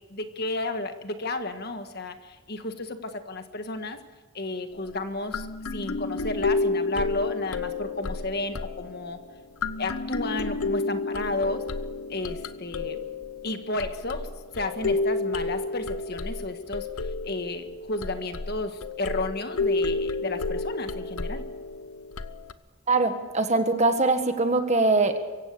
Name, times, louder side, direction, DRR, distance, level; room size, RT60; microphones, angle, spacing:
voice 1, 0.1-4.0 4.3-9.2 9.8-11.6 12.1-13.0 13.4-14.3 14.5-21.5, left 2 dB, 45° left, 7 dB, 1.6 m, -32 dB
sound 1, 4.7-4.9 5.3-9.3 9.6-22.5, left 3 dB, 85° left, 0.9 m, -31 dB
voice 2, 22.9-25.2, right 3 dB, 30° right, 7 dB, 1.6 m, -22 dB
24.0 x 16.0 x 6.9 m, 1.3 s
head